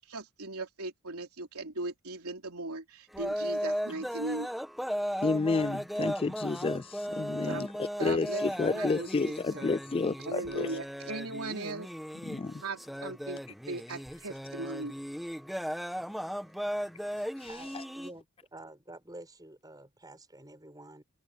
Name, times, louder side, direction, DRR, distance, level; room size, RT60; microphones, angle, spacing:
voice 1, 0.0-4.5 7.4-7.7 8.0-9.1 9.5-9.7 10.2-11.9 12.6-13.4 13.7-14.9, right 2 dB, 85° right, 3.3 m, -38 dB
sound 1, 3.1-18.1, equal, ahead, 1.8 m, -36 dB
voice 2, 5.2-7.7 8.0-10.7 12.3-12.6 17.4-17.5, left 3 dB, 25° left, 0.3 m, -30 dB
voice 3, 17.5-21.0, right 1 dB, 15° right, 7.7 m, -49 dB
head